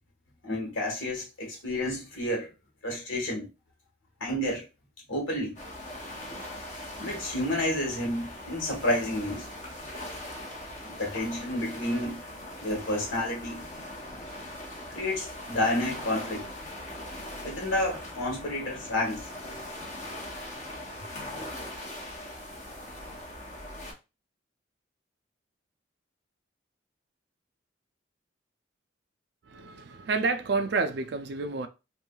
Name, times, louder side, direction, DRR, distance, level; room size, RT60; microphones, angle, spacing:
voice 1, 0.4-2.5 2.8-3.5 4.2-4.6 5.1-5.6 7.0-9.5 10.8-12.2 12.6-13.6 14.9-16.4 17.4-19.2, left 1 dB, 90° left, 1.5 m, -30 dB
sound 1, 5.6-23.9, left 1 dB, 35° left, 0.7 m, -41 dB
voice 2, 29.4-31.7, right 4 dB, 55° right, 0.3 m, -29 dB
3.1 x 2.6 x 2.3 m
head